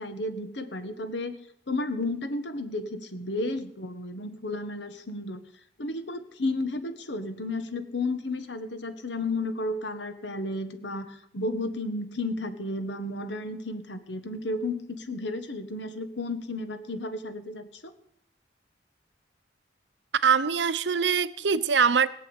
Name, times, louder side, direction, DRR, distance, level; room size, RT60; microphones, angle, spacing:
voice 1, 0.0-1.4 1.7-5.4 5.8-17.9, left 2 dB, 80° left, 1.6 m, -33 dB
voice 2, 20.2-22.1, right 6 dB, 80° right, 0.7 m, -23 dB
18.5 x 7.5 x 8.9 m
head